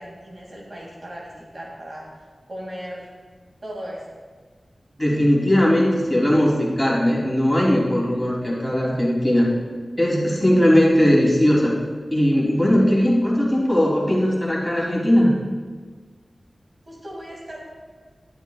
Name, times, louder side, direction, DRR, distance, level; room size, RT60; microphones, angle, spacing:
voice 1, 0.0-2.1 2.5-3.1 3.6-4.0 16.9-17.6, equal, 50° right, -3 dB, 2.5 m, -37 dB
voice 2, 5.0-9.5 10.0-11.7 12.1-15.3, equal, 5° left, -6 dB, 3.2 m, -19 dB
12.5 x 11.0 x 2.4 m, 1.5 s
wide cardioid pair, 65°, 0 cm